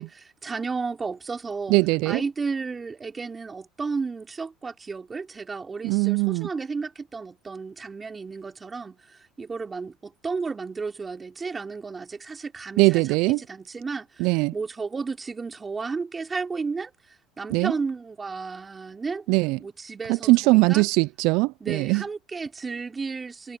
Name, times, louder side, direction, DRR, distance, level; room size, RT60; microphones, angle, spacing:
voice 1, 0.0-1.8 2.1-13.1 13.4-19.2 19.6-20.8 21.6-23.6, right 4 dB, 20° right, 4.0 m, -33 dB
voice 2, 1.7-2.2 5.8-6.5 12.8-13.4 14.2-14.5 17.5-17.7 19.3-19.6 20.1-22.0, right 24 dB, 70° right, 0.3 m, -21 dB
supercardioid pair, 105°, 0 cm